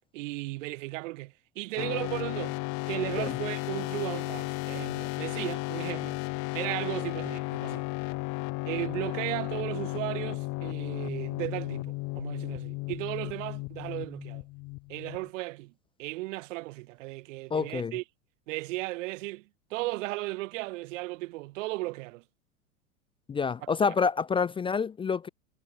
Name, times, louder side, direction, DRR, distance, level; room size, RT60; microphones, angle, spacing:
voice 1, 0.1-2.6 2.9-6.2 6.5-7.9 8.7-14.4 14.9-15.7 16.0-18.0 18.5-22.2 23.8-23.9, right 21 dB, 55° right, 4.9 m, -35 dB
sound 1, 1.8-15.3, left 25 dB, 40° left, 1.5 m, -34 dB
voice 2, 17.5-17.9 23.3-25.3, left 5 dB, 10° left, 0.6 m, -27 dB
hypercardioid pair, 105°, 44 cm